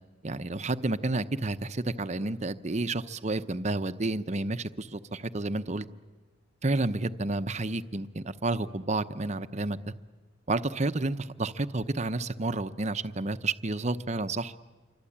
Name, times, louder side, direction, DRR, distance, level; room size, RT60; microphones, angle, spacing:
voice 1, 0.2-5.9 6.6-9.9 10.5-14.5, right 2 dB, 35° right, 11 dB, 0.9 m, -30 dB
28.0 x 24.0 x 8.7 m, 1.3 s
head